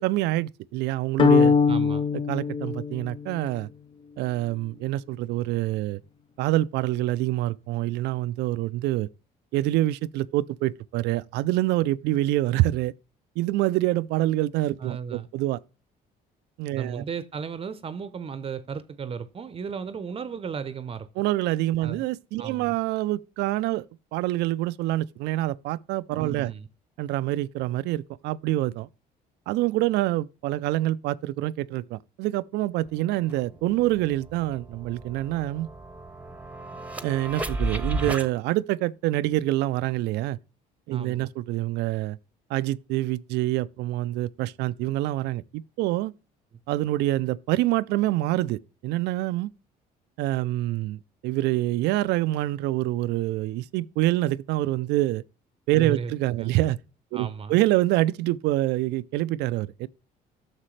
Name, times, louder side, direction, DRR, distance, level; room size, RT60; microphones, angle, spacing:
voice 1, 0.0-1.5 2.3-3.7 4.2-6.0 6.4-9.1 9.5-12.9 13.4-15.6 16.6-17.0 21.2-23.8 24.1-26.5 27.0-28.9 29.5-35.7 37.0-40.4 40.9-42.2 42.5-46.1 46.7-49.5 50.2-55.2 55.7-56.8 57.1-59.9, right 16 dB, 85° right, 0.4 m, -26 dB
sound 1, 1.2-3.5, left 5 dB, 30° left, 0.5 m, -22 dB
voice 2, 1.7-2.1 14.8-15.3 16.7-21.1 21.8-22.0 22.4-22.8 26.2-26.7 40.9-41.3 55.8-56.1 56.4-56.6 57.1-57.6, right 6 dB, 35° right, 0.7 m, -35 dB
sound 2, 32.9-33.0 33.3-38.3, right 2 dB, 10° right, 1.0 m, -34 dB
10.0 x 6.6 x 3.2 m
cardioid pair, 110°, 17 cm